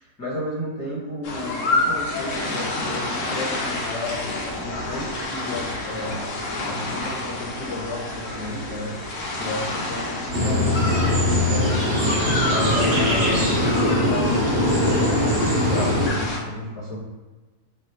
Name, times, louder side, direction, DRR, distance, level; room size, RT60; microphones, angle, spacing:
voice 1, 0.2-4.2 4.6-6.2 6.6-8.9 9.3-11.0 11.4-13.4 13.8-14.6 15.0-17.0, left 1 dB, 15° left, -10 dB, 1.1 m, -32 dB
sound 1, 1.2-16.4, left 2 dB, 65° left, 0.9 m, -29 dB
sound 2, 10.3-16.1, left 1 dB, 45° right, 0.9 m, -21 dB
3.3 x 2.6 x 2.8 m, 1.2 s
omnidirectional pair, 1.6 m